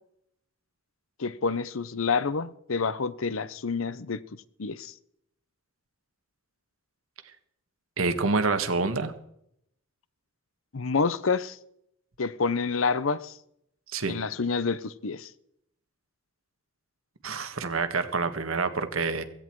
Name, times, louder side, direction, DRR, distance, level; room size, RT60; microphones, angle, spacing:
voice 1, 1.2-4.2 4.6-4.9 10.7-11.6 12.2-13.3 14.1-15.3, left 4 dB, 75° left, 0.8 m, -28 dB
voice 2, 8.0-9.1 13.9-14.1 17.2-19.2, right 4 dB, 90° right, 1.6 m, -27 dB
16.0 x 16.0 x 4.7 m
head